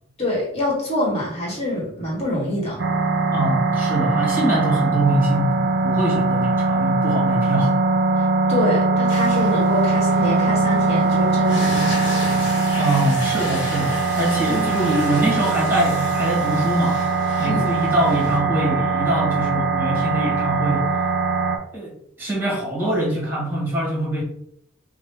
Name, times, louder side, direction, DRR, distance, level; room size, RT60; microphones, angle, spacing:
voice 1, 0.2-2.8 8.5-12.0 14.5-14.7 17.4-17.7, left 1 dB, 30° left, -4 dB, 1.5 m, -25 dB
sound 1, 2.8-21.6, right 3 dB, 55° right, 0.6 m, -21 dB
voice 2, 3.3-8.1 12.8-17.1 17.4-20.9 21.7-24.2, right 1 dB, 10° right, -3 dB, 1.5 m, -23 dB
sound 2, 9.1-18.4, left 1 dB, 65° left, 1.1 m, -34 dB
5.3 x 2.2 x 3.3 m, 0.74 s
head